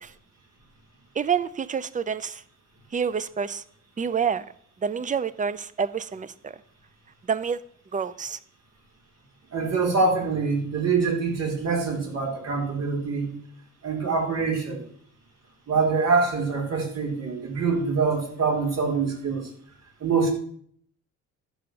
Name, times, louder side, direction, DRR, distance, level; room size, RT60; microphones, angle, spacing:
voice 1, 1.2-2.4 2.9-3.6 4.0-4.5 4.8-6.5 7.3-7.6 7.9-8.4, right 6 dB, 25° right, 0.6 m, -27 dB
voice 2, 9.5-13.3 13.8-14.8 15.7-19.5 20.0-20.3, right 4 dB, 60° right, 3.8 m, -25 dB
12.0 x 5.2 x 7.0 m
cardioid pair, 90°, 30 cm